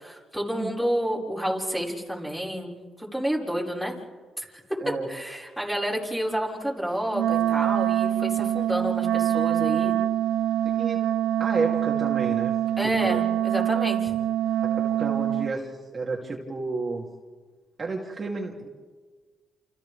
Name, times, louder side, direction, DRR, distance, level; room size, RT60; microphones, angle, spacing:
voice 1, 0.0-3.9 4.4-4.5 5.1-10.0 12.8-14.1, equal, ahead, -5 dB, 5.1 m, -29 dB
Wind instrument woodwind instrument, 7.1-15.6, right 12 dB, 85° right, 0.7 m, -25 dB
voice 2, 11.4-12.5 12.8-13.2 14.6-17.1 17.8-18.7, right 3 dB, 35° right, -3 dB, 2.9 m, -31 dB
29.5 x 28.5 x 3.6 m, 1.4 s
cardioid pair, 90°, 0 cm